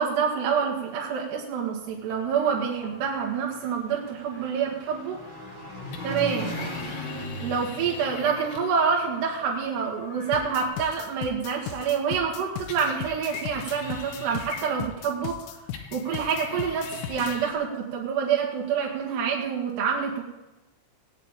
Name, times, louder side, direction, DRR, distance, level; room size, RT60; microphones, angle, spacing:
voice 1, 0.0-5.2 6.0-6.5 7.4-15.5 15.9-20.2, right 6 dB, 65° right, -2 dB, 3.6 m, -27 dB
Engine, 1.9-10.7, equal, 10° left, 2.7 m, -39 dB
sound 1, 5.9-8.8 12.7-15.1 15.7-17.5, left 6 dB, 65° left, 2.8 m, -41 dB
sound 2, 10.3-17.4, left 11 dB, 85° left, 2.5 m, -37 dB
18.5 x 6.5 x 8.9 m, 1.0 s
omnidirectional pair, 5.8 m